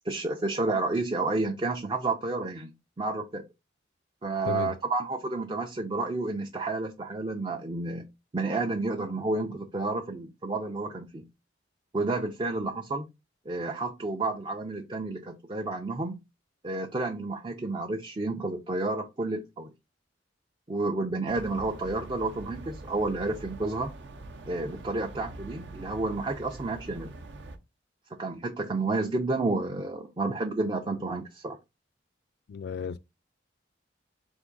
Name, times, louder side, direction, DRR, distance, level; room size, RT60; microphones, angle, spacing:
voice 1, 0.0-3.4 4.2-8.0 8.3-11.2 11.9-13.0 13.5-16.2 16.6-19.7 20.7-23.9 24.5-27.1 28.2-31.6, right 2 dB, 25° right, 0.4 m, -30 dB
sound 1, 21.3-27.6, right 2 dB, 70° right, 0.6 m, -44 dB
voice 2, 32.5-33.0, left 5 dB, 60° left, 0.3 m, -33 dB
3.5 x 2.9 x 3.9 m
head